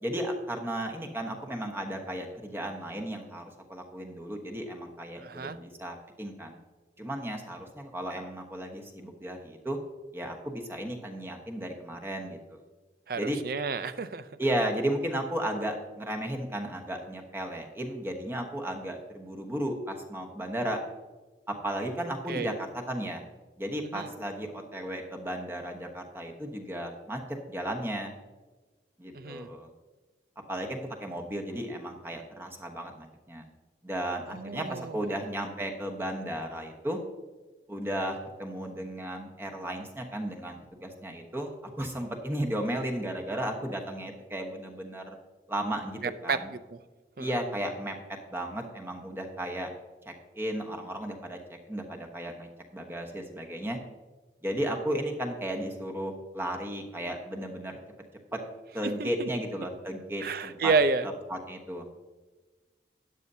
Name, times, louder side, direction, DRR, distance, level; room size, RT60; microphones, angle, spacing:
voice 1, 0.0-6.6 7.0-9.8 10.1-12.6 13.1-13.4 14.4-20.8 21.5-23.2 23.6-27.2 27.5-28.1 29.0-29.7 30.5-33.5 33.8-37.0 37.7-45.2 45.5-46.5 47.2-48.0 48.3-49.7 50.1-51.4 51.7-53.8 54.4-57.7 58.3-58.4 58.7-60.7 61.3-61.9, right 1 dB, 15° right, 2 dB, 1.2 m, -34 dB
voice 2, 5.2-5.6 13.1-14.3 22.3-22.6 23.9-24.1 29.1-29.5 34.3-35.2 46.0-46.8 47.2-47.4 58.8-59.3 60.2-61.1, right 4 dB, 55° right, 12 dB, 0.5 m, -30 dB
13.0 x 9.3 x 2.8 m, 1.3 s
head